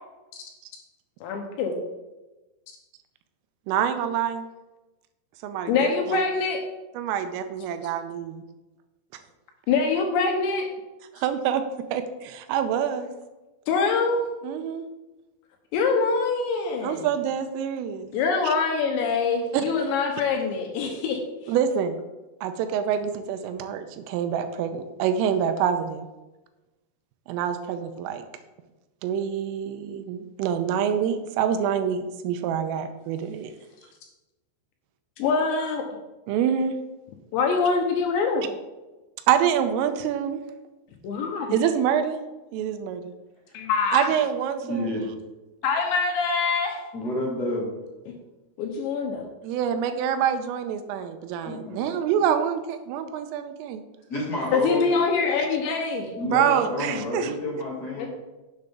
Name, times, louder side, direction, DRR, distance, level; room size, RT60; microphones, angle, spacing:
voice 1, 1.2-1.8 5.7-6.6 9.7-10.7 13.7-14.2 15.7-17.1 18.1-21.2 35.2-35.8 37.3-38.5 41.0-41.5 43.5-44.1 45.6-46.8 48.1-48.2 48.6-49.3 54.5-56.1 58.0-58.1, left 4 dB, 75° left, 3 dB, 3.0 m, -24 dB
voice 2, 3.7-4.5 5.4-6.2 6.9-8.4 11.1-11.6 11.9-13.1 14.4-14.8 16.8-18.1 18.4-18.5 19.5-19.6 21.5-22.0 22.4-26.1 27.3-28.2 29.0-33.5 36.3-36.7 39.3-40.4 41.5-42.2 42.5-43.1 43.9-45.0 49.4-53.8 56.2-57.3, right 8 dB, 90° right, 8 dB, 3.4 m, -26 dB
voice 3, 44.6-45.0 46.9-47.7 51.4-52.0 54.1-54.9 56.2-58.1, left 1 dB, 30° left, -4 dB, 2.0 m, -29 dB
10.5 x 7.9 x 3.7 m, 1.1 s
omnidirectional pair, 5.7 m